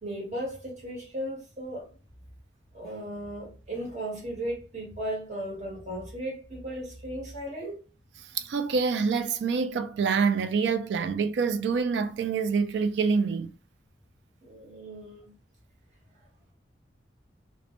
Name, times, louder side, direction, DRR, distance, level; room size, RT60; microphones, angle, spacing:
voice 1, 0.0-1.9 2.7-7.8 14.4-15.3, right 1 dB, 40° right, 1.0 m, -36 dB
voice 2, 8.3-13.5, right 5 dB, 70° right, 0.3 m, -26 dB
2.1 x 2.1 x 2.8 m
head